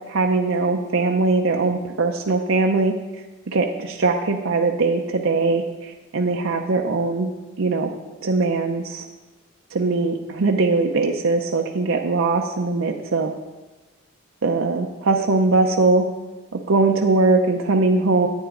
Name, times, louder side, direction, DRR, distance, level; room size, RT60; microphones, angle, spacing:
voice 1, 0.1-3.0 3.5-7.3 7.6-7.9 8.2-9.0 9.7-13.3 14.4-16.1 16.7-18.3, right 3 dB, 65° right, 2 dB, 0.6 m, -21 dB
10.0 x 8.8 x 3.7 m, 1.1 s
head